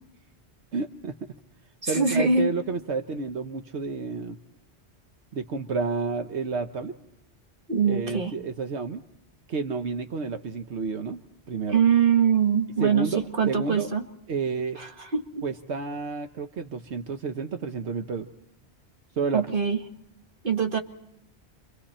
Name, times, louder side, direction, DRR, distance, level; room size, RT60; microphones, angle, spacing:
voice 1, 0.7-1.1 1.9-4.4 5.3-6.9 7.9-9.0 9.5-11.2 11.5-11.8 12.8-13.2 13.5-13.9 14.3-14.8 15.4-18.3 19.2-19.4, right 4 dB, 75° right, 6 dB, 1.3 m, -30 dB
voice 2, 1.8-2.5 7.7-8.3 11.7-14.1 14.8-15.4 19.3-19.8 20.4-20.8, right 6 dB, 50° right, 4 dB, 2.1 m, -23 dB
29.5 x 24.5 x 4.3 m, 0.81 s
omnidirectional pair, 1.1 m